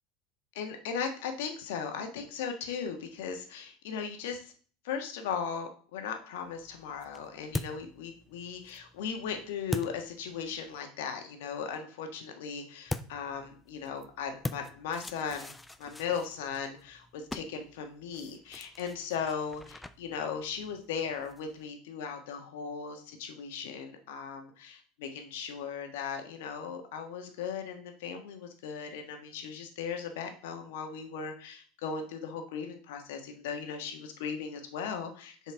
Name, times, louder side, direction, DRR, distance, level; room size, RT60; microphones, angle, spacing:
voice 1, 0.5-4.5 4.8-15.5 15.8-35.5, left 6 dB, 85° left, 5 dB, 1.5 m, -37 dB
sound 1, 6.4-10.8 12.9-21.7, left 2 dB, 10° left, 0.4 m, -43 dB
7.1 x 4.6 x 4.5 m, 0.43 s
supercardioid pair, 125°, 0 cm